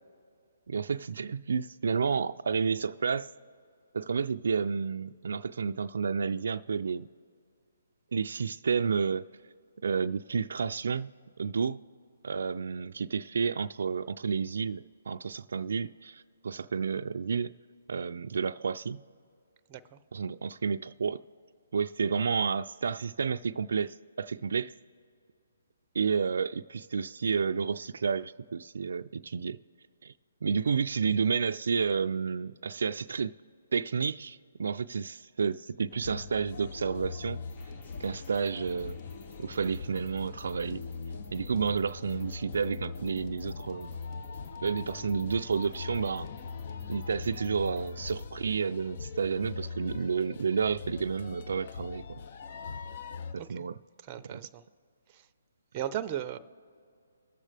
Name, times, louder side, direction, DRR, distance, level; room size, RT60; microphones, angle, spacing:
voice 1, 0.7-3.3 3.9-7.1 8.1-9.3 9.8-11.8 12.2-17.5 17.9-19.0 20.1-21.2 21.7-24.7 25.9-29.6 30.0-30.1 30.4-33.3 33.7-37.4 38.0-39.0 39.4-40.8 41.3-44.0 44.6-46.3 46.9-52.2 53.3-53.8 54.2-54.4, right 5 dB, 70° right, 0.3 m, -31 dB
voice 2, 19.7-20.0 53.4-53.7 54.0-54.6 55.1-55.3 55.7-56.4, right 11 dB, 25° right, 0.6 m, -37 dB
sound 1, 35.9-53.3, left 5 dB, 50° left, 0.6 m, -41 dB
sound 2, 37.5-48.3, left 3 dB, 20° left, 0.9 m, -53 dB
21.0 x 7.3 x 3.4 m
hypercardioid pair, 150°, 0 cm